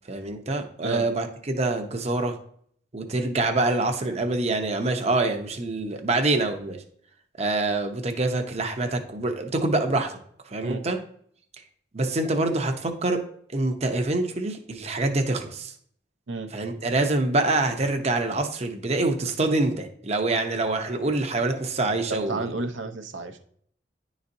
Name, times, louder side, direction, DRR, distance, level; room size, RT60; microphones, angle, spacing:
voice 1, 0.1-2.4 2.9-6.8 7.4-10.2 10.5-11.0 11.9-13.2 13.5-15.7 16.5-22.5, right 2 dB, 35° right, 5 dB, 0.7 m, -25 dB
voice 2, 22.3-23.4, right 2 dB, 85° right, 7 dB, 0.7 m, -32 dB
10.0 x 4.1 x 2.6 m, 0.62 s
head